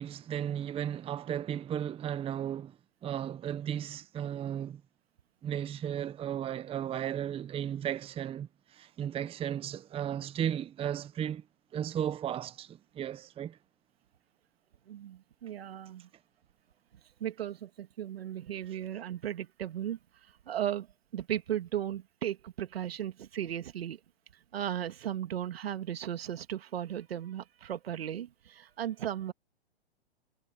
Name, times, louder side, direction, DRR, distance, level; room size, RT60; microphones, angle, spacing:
voice 1, 0.0-4.8 5.4-11.4 11.7-13.6, right 10 dB, 20° right, 1.0 m, -35 dB
voice 2, 14.9-16.1 17.2-20.0 20.5-20.9 21.1-24.0 24.5-29.3, right 11 dB, 70° right, 2.6 m, -36 dB
hypercardioid pair, 120°, 31 cm